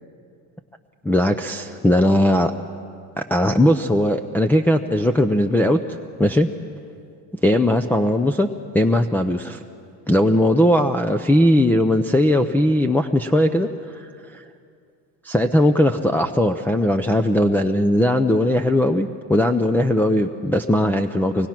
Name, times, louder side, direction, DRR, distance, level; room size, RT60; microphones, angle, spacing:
voice 1, 1.0-2.5 3.2-5.8 6.2-6.5 7.4-8.5 8.7-9.6 10.1-14.4 15.2-21.5, left 1 dB, 5° left, 2 dB, 0.6 m, -19 dB
24.5 x 19.5 x 5.9 m, 2.4 s
cardioid pair, 110°, 38 cm